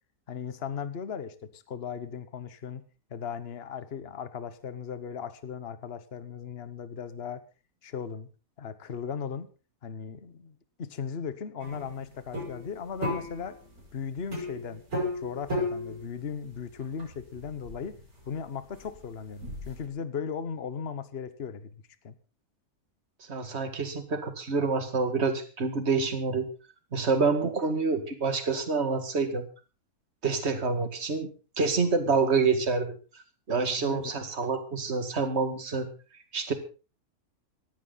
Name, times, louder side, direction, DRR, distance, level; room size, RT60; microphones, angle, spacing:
voice 1, 0.3-2.8 3.1-7.4 7.8-8.3 8.6-9.5 9.8-13.6 13.9-14.8 15.1-18.0 18.2-21.8 22.0-22.1 33.8-34.0, left 6 dB, 40° left, 13 dB, 1.4 m, -37 dB
sound 1, 11.6-19.9, left 1 dB, 65° right, 6.8 m, -36 dB
voice 2, 23.3-26.5 26.9-29.4 30.2-31.3 31.6-33.0 33.5-35.9 36.3-36.5, right 4 dB, 40° right, 8 dB, 2.4 m, -27 dB
17.5 x 15.0 x 4.1 m, 0.34 s
omnidirectional pair, 1.7 m